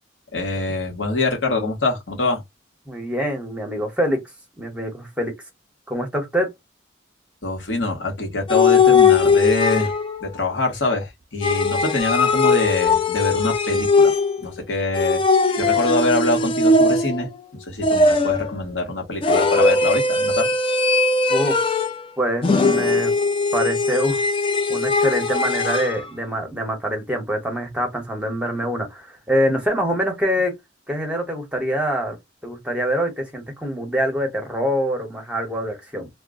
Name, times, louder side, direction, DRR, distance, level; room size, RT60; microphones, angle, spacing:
voice 1, 0.3-2.4 7.4-9.9 10.2-14.1 14.4-15.2 15.6-17.3 17.6-20.5, left 2 dB, 80° left, 1.1 m, -24 dB
voice 2, 2.9-4.2 4.6-5.3 5.9-6.5 21.3-21.6 22.2-23.1 23.5-24.2 24.7-30.5 30.9-32.2 32.4-36.1, equal, 5° right, 0.9 m, -24 dB
sound 1, 8.5-10.2 11.4-14.5 15.0-17.3 17.8-18.5 19.2-22.0 22.4-26.0, left 3 dB, 30° left, 0.4 m, -19 dB
2.3 x 2.1 x 3.5 m
head